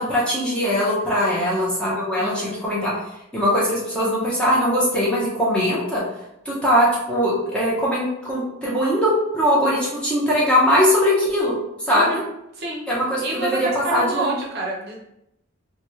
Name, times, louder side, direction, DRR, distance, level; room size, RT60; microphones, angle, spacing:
voice 1, 0.0-2.9 3.3-6.0 6.5-11.5 11.9-12.2 12.9-14.3, equal, 5° left, -7 dB, 0.6 m, -21 dB
voice 2, 1.3-1.7 2.2-2.6 11.9-12.2 12.5-12.8 13.2-15.0, right 2 dB, 50° right, -3 dB, 0.6 m, -28 dB
2.9 x 2.2 x 3.0 m, 0.83 s
head